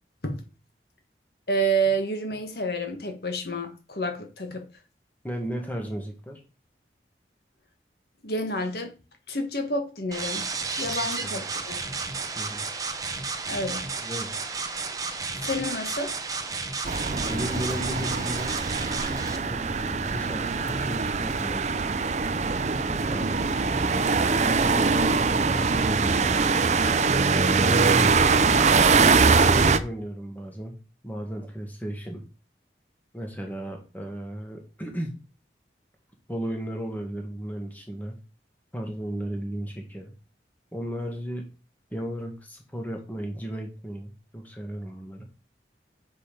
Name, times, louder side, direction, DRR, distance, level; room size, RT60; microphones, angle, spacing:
voice 1, 1.5-4.7 8.2-8.9 9.3-10.5 10.8-11.8 13.5-13.9 15.3-16.2, right 2 dB, 60° left, 1.4 m, -29 dB
voice 2, 5.2-6.4 11.3-11.5 12.4-12.7 14.0-14.3 17.3-18.6 19.4-22.0 22.9-23.3 23.5-24.1 24.4-25.3 25.6-26.8 27.6-28.3 28.9-30.8 31.0-32.2 33.1-35.1 36.3-38.2 38.7-40.1 40.7-41.5 41.9-45.2, equal, 10° left, 1.8 m, -34 dB
sound 1, 10.1-19.4, right 4 dB, 20° right, 0.8 m, -32 dB
sound 2, 16.8-29.8, right 4 dB, 40° right, 0.5 m, -22 dB
7.4 x 5.5 x 5.2 m
head